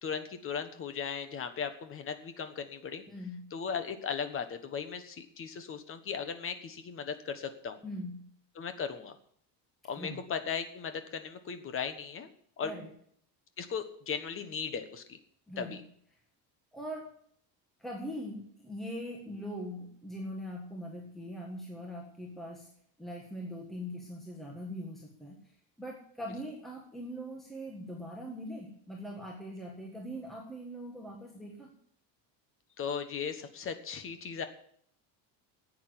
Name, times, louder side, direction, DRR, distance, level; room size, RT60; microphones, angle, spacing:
voice 1, 0.0-3.0 3.5-7.8 8.5-9.1 9.9-12.3 12.6-12.7 13.6-15.2 15.6-15.8 32.8-34.4, left 6 dB, 30° left, 9 dB, 1.4 m, -37 dB
voice 2, 3.1-3.5 7.8-8.2 10.0-10.2 12.6-12.9 15.5-15.7 16.7-17.1 17.8-22.7 23.0-25.4 25.8-31.7, equal, ahead, -1 dB, 1.7 m, -41 dB
10.0 x 8.7 x 9.8 m, 0.64 s
cardioid pair, 165°, 42 cm